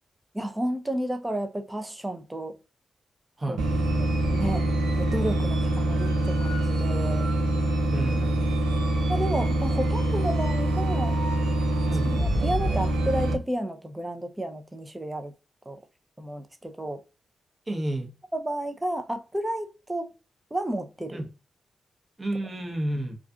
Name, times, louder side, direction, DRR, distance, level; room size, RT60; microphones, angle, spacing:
voice 1, 0.3-2.6 3.5-3.6 3.9-4.7 5.0-7.3 9.1-11.2 12.2-15.3 15.7-15.8 16.2-17.0 18.3-20.1 20.5-21.2, right 1 dB, 15° right, 0.6 m, -31 dB
sound 1, 3.6-13.3, right 1 dB, 85° right, 0.5 m, -25 dB
voice 2, 7.9-8.5 11.9-12.1 17.7-18.1 21.1-21.2 22.2-23.2, right 1 dB, 35° right, 0.9 m, -30 dB
2.4 x 2.4 x 2.3 m
supercardioid pair, 40°, 0 cm